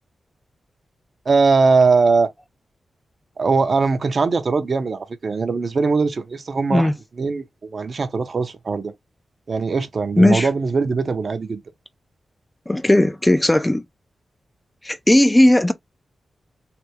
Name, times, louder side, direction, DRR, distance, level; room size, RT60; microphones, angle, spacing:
voice 1, 1.3-2.3 3.4-6.9 7.2-8.9 9.5-11.6, right 4 dB, 50° right, 0.6 m, -20 dB
voice 2, 10.2-10.5 12.7-13.8 14.8-15.7, left 1 dB, 10° left, 0.3 m, -16 dB
3.3 x 2.2 x 2.8 m
wide cardioid pair, 105°, 0 cm